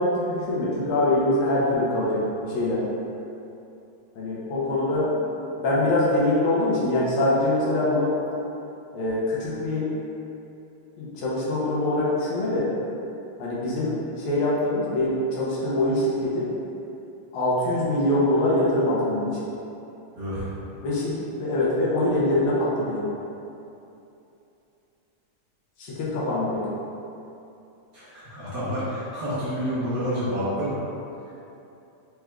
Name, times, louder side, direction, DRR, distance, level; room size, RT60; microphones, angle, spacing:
voice 1, 0.0-2.8 4.1-5.1 5.6-8.1 8.9-9.9 11.0-12.7 13.4-16.5 17.3-19.4 20.8-23.1 25.8-26.6, left 1 dB, 75° left, -7 dB, 1.6 m, -24 dB
voice 2, 20.1-20.5 27.9-30.8, equal, 50° right, -11 dB, 1.3 m, -29 dB
4.8 x 3.3 x 2.3 m, 2.8 s
omnidirectional pair, 2.4 m